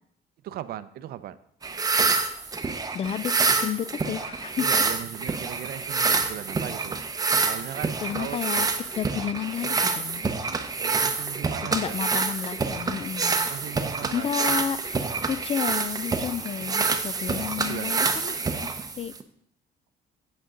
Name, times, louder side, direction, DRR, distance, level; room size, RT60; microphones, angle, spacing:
voice 1, 0.4-1.4 4.6-8.4 10.6-12.0 13.5-14.5 15.0-15.2 17.4-18.0, right 12 dB, 65° right, 14 dB, 0.6 m, -38 dB
sound 1, 1.6-19.2, right 4 dB, 20° right, 0.7 m, -27 dB
voice 2, 2.9-4.7 8.0-8.7 8.9-10.2 11.7-13.5 14.1-15.0 15.3-18.7 19.0-19.1, left 9 dB, 35° left, 18 dB, 0.4 m, -31 dB
8.0 x 7.8 x 3.8 m, 0.68 s
cardioid pair, 110°, 17 cm